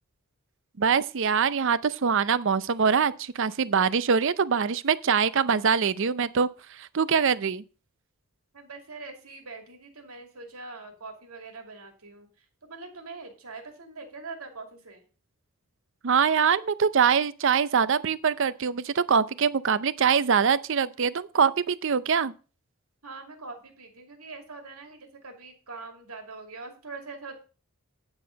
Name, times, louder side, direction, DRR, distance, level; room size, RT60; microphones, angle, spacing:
voice 1, 0.8-7.6 16.0-22.3, right 6 dB, 60° right, 0.5 m, -24 dB
voice 2, 8.5-12.3 12.6-15.0 23.0-27.3, right 3 dB, 80° right, 2.5 m, -43 dB
9.8 x 6.9 x 5.2 m
head